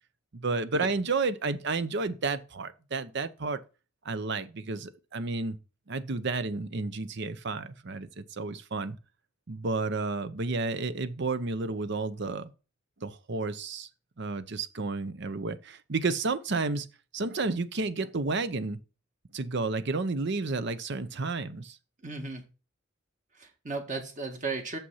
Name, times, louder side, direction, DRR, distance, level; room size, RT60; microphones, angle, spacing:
voice 1, 0.3-3.6 4.0-5.6 5.9-9.0 9.5-12.5 13.0-13.9 14.2-16.9 17.1-18.8 19.3-21.8, right 3 dB, 60° right, 0.8 m, -31 dB
voice 2, 22.0-22.4 23.4-24.8, right 3 dB, 40° right, 1.8 m, -35 dB
7.0 x 5.7 x 5.6 m
head